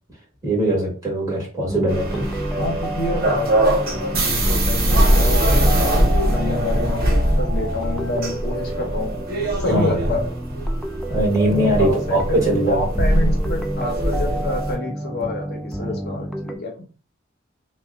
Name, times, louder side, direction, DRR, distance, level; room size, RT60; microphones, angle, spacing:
voice 1, 0.4-2.3 9.7-10.0 11.1-12.9, right 1 dB, 20° right, -4 dB, 2.1 m, -21 dB
sound 1, 1.7-16.6, right 1 dB, ahead, 0.4 m, -30 dB
sound 2, 1.9-14.8, right 1 dB, 50° right, 1.2 m, -22 dB
voice 2, 2.6-10.3 11.8-16.9, left 2 dB, 50° left, 1 dB, 1.0 m, -28 dB
5.8 x 2.5 x 2.4 m, 0.37 s
head